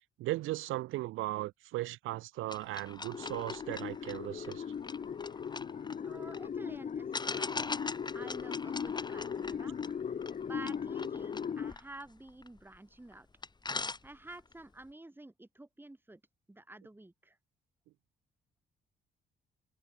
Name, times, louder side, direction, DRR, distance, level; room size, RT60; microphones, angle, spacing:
voice 1, 0.2-4.6, right 17 dB, 85° right, 0.6 m, -37 dB
sound 1, 2.5-6.5 7.1-12.8 13.1-13.2 13.4-14.5, left 3 dB, 20° left, 1.9 m, -42 dB
sound 2, 3.1-11.7, left 7 dB, 40° left, 0.8 m, -38 dB
voice 2, 6.0-9.8 10.4-13.3 14.0-16.2 16.5-17.4, right 2 dB, 10° right, 3.9 m, -50 dB
cardioid pair, 90°, 20 cm